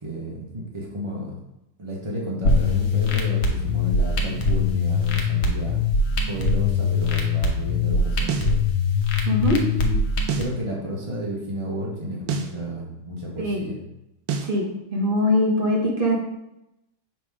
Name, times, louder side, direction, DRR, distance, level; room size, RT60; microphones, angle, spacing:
voice 1, 0.0-1.4 1.8-5.8 6.3-8.6 9.5-10.0 10.4-13.8, equal, 55° right, -3 dB, 0.3 m, -32 dB
sound 1, 2.4-10.4, left 4 dB, 80° left, 1.8 m, -22 dB
sound 2, 8.3-8.6 10.3-10.6 12.3-12.6 14.3-14.6, right 6 dB, 75° right, 1.4 m, -27 dB
voice 2, 9.3-9.6 13.4-13.6 14.4-16.1, left 1 dB, 30° right, -2 dB, 1.3 m, -22 dB
7.3 x 3.6 x 4.7 m, 0.88 s
omnidirectional pair, 2.2 m